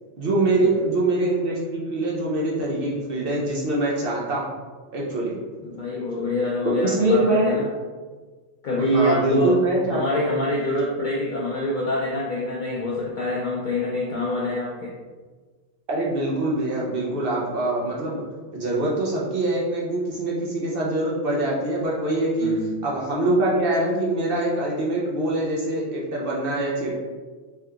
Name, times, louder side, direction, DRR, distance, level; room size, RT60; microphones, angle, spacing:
voice 1, 0.2-4.5 4.9-5.4 6.8-7.6 8.9-10.3 15.9-18.2 18.5-22.5 22.8-27.0, right 2 dB, 60° right, -4 dB, 0.6 m, -24 dB
voice 2, 5.6-7.7 8.6-9.6 9.9-14.9 22.4-22.8, left 1 dB, 85° left, -5 dB, 0.4 m, -25 dB
3.4 x 2.7 x 2.3 m, 1.4 s
omnidirectional pair, 1.4 m